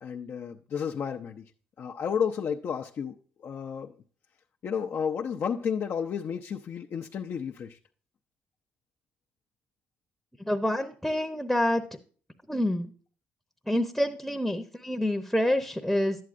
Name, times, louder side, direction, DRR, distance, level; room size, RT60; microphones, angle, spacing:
voice 1, 0.0-1.5 1.8-3.9 4.6-7.8, left 7 dB, 55° left, 0.5 m, -32 dB
voice 2, 10.4-11.8 12.5-12.9 13.7-16.2, left 1 dB, ahead, 0.8 m, -27 dB
11.0 x 8.5 x 2.5 m
supercardioid pair, 60°, 5 cm